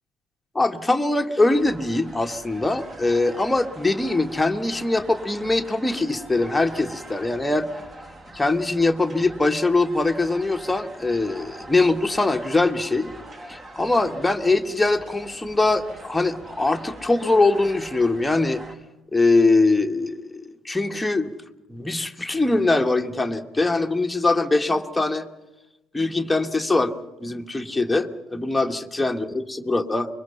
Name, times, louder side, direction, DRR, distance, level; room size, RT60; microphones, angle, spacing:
voice 1, 0.5-7.7 8.3-13.1 13.5-18.6 19.1-21.3 21.7-25.2 25.9-26.9 27.2-30.1, left 2 dB, 10° left, 6 dB, 1.5 m, -22 dB
sound 1, 1.5-18.8, right 1 dB, 30° right, 3.5 m, -43 dB
24.5 x 23.0 x 5.6 m, 1.0 s
figure-of-eight pair, 55°, 0 cm